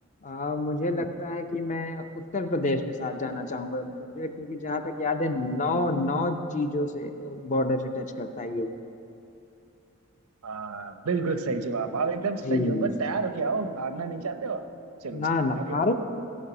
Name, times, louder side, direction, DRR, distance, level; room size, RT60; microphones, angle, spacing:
voice 1, 0.2-8.7 12.4-12.9 15.1-15.9, left 2 dB, 35° left, 7 dB, 0.5 m, -28 dB
voice 2, 10.4-14.7 15.0-15.2 15.5-15.7, right 4 dB, 85° right, 8 dB, 0.7 m, -30 dB
16.0 x 5.5 x 6.0 m, 2.7 s
head